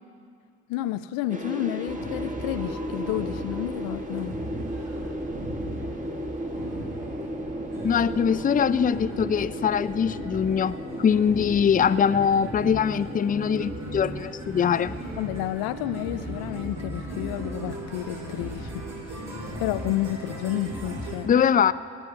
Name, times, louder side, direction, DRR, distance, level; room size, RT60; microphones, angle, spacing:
voice 1, 0.7-4.4 15.2-19.3 19.6-21.3, left 14 dB, 80° left, 14 dB, 0.5 m, -31 dB
sound 1, 1.3-17.4, equal, 20° right, 1.4 m, -36 dB
sound 2, 1.9-21.2, right 1 dB, 65° right, 4.3 m, -37 dB
voice 2, 7.8-14.9 21.3-21.7, left 7 dB, 25° left, 15 dB, 0.4 m, -22 dB
18.5 x 8.0 x 6.5 m, 2.5 s
hypercardioid pair, 50°, 34 cm